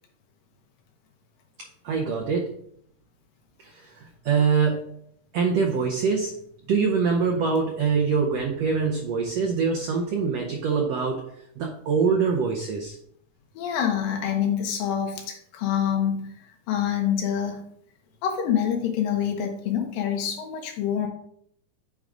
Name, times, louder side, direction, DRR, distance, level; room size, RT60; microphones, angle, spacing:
voice 1, 1.6-2.5 3.6-4.9 5.3-6.4 6.7-13.0, right 5 dB, 85° right, 2 dB, 1.4 m, -24 dB
voice 2, 13.5-16.3 16.7-17.6 18.2-21.1, left 9 dB, 85° left, 3 dB, 2.8 m, -26 dB
8.6 x 3.8 x 4.9 m, 0.68 s
omnidirectional pair, 3.9 m